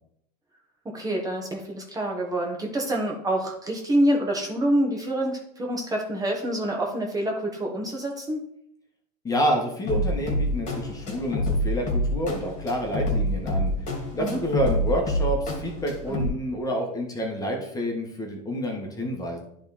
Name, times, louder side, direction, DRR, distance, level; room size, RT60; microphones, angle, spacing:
voice 1, 0.9-8.4 14.2-14.4 16.1-16.2, right 1 dB, 15° right, 0 dB, 1.6 m, -26 dB
voice 2, 9.2-13.7 14.1-19.4, equal, 15° left, 1 dB, 1.8 m, -28 dB
sound 1, 9.9-16.3, left 1 dB, 35° left, 2.5 m, -27 dB
10.0 x 3.8 x 4.3 m, 0.71 s
hypercardioid pair, 105°, 21 cm